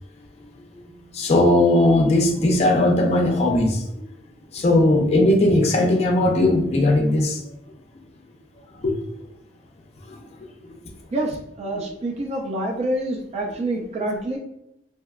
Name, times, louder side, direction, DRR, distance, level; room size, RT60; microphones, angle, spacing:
voice 1, 0.4-3.9 4.5-7.5 8.7-8.9 10.1-10.4 10.6-10.8, left 1 dB, 35° left, 0 dB, 0.4 m, -19 dB
voice 2, 11.1-14.4, right 1 dB, 40° right, 0 dB, 0.4 m, -27 dB
2.7 x 2.1 x 2.3 m, 0.79 s
head